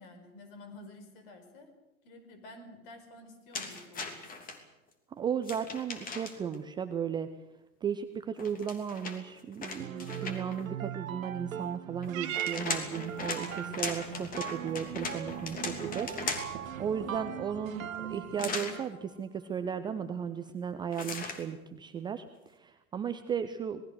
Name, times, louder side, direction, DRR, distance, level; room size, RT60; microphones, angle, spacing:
voice 1, 0.0-1.7 2.0-4.2, left 2 dB, 40° left, 7 dB, 5.1 m, -50 dB
sound 1, 3.5-4.6 5.4-6.6 8.4-10.6 12.0-16.7 18.4-18.8 20.9-21.4, left 3 dB, 20° left, 3.0 m, -38 dB
voice 2, 5.1-7.3 7.8-16.1 16.3-16.5 16.8-23.8, right 7 dB, 10° right, 9 dB, 0.7 m, -35 dB
sound 2, 9.8-19.0, right 10 dB, 70° right, 0.7 m, -40 dB
Purr / Meow, 12.1-18.6, right 11 dB, 35° right, 2.1 m, -43 dB
26.5 x 19.5 x 6.5 m, 0.99 s
figure-of-eight pair, 105°, 42 cm